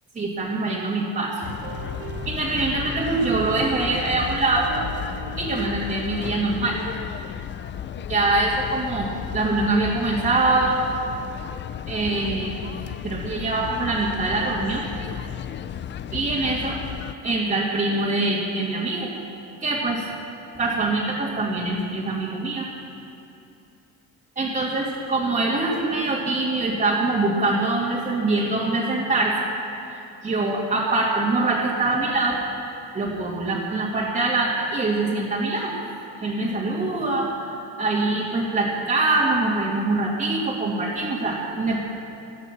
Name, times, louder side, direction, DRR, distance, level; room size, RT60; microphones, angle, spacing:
voice 1, 0.1-1.5 2.3-4.7 5.4-6.8 8.0-10.8 11.9-12.6 13.0-14.8 16.1-16.7 17.2-19.1 19.6-20.1 20.5-22.7 24.4-29.4 29.9-32.4 32.9-35.7 36.2-41.8, right 2 dB, 20° right, -6 dB, 2.1 m, -24 dB
sound 1, 1.4-17.1, left 9 dB, 30° left, 0.4 m, -34 dB
sound 2, 1.4-7.0, right 6 dB, 80° right, 2.2 m, -39 dB
17.0 x 12.5 x 6.0 m, 2.7 s
cardioid pair, 140°, 36 cm